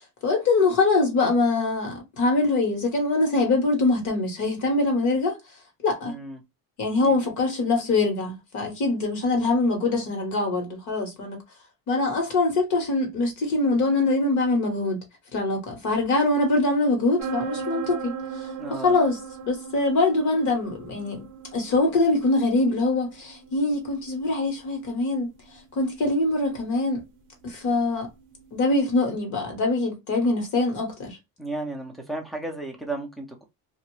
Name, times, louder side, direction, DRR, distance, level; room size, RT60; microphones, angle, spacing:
voice 1, 0.2-5.4 5.8-6.1 6.8-11.4 11.9-15.0 15.3-21.3 21.5-25.3 25.8-27.0 27.4-28.1 28.5-31.2, left 2 dB, 50° left, 1.1 m, -23 dB
voice 2, 6.0-6.4 7.0-7.2 18.6-18.9 31.4-33.4, right 2 dB, ahead, 0.3 m, -34 dB
sound 1, 17.2-28.7, right 5 dB, 55° right, 0.6 m, -39 dB
2.6 x 2.4 x 3.0 m
cardioid pair, 180°, 38 cm